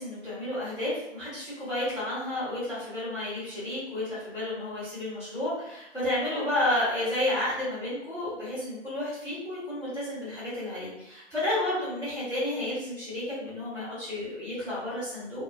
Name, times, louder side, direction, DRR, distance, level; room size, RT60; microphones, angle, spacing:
voice 1, 0.0-15.4, left 1 dB, ahead, -22 dB, 0.6 m, -31 dB
2.3 x 2.1 x 2.6 m, 0.85 s
figure-of-eight pair, 150°, 36 cm